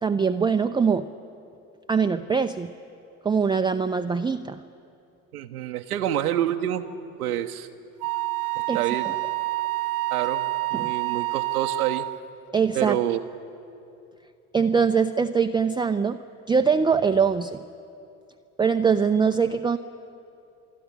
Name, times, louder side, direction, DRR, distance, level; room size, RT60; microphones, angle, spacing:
voice 1, 0.0-1.1 1.9-2.7 3.2-4.6 8.7-8.8 9.0-9.1 10.7-10.9 12.5-13.0 14.5-16.2 16.5-17.6 18.6-19.8, right 5 dB, 10° right, 7 dB, 0.5 m, -22 dB
voice 2, 5.3-6.8 7.2-7.7 8.7-9.1 10.1-12.1 12.7-13.2, right 11 dB, 80° right, 5 dB, 0.8 m, -27 dB
Wind instrument woodwind instrument, 8.0-12.2, right 21 dB, 50° right, 0.7 m, -28 dB
26.5 x 11.0 x 9.8 m, 2.6 s
figure-of-eight pair, 55°, 44 cm